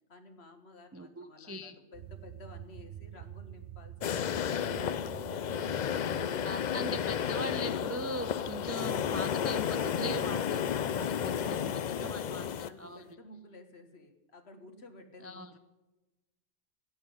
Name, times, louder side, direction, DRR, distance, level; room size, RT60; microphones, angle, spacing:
voice 1, 0.1-6.7 10.7-15.6, left 1 dB, 55° left, 7 dB, 1.7 m, -52 dB
voice 2, 0.9-1.7 6.4-12.5 12.8-13.0 15.2-15.5, left 1 dB, 25° right, 9 dB, 0.3 m, -40 dB
sound 1, 1.9-12.3, right 12 dB, 65° right, 0.8 m, -49 dB
sound 2, 4.0-12.7, left 8 dB, 70° left, 0.4 m, -32 dB
11.0 x 9.0 x 9.3 m, 1.1 s
omnidirectional pair, 1.3 m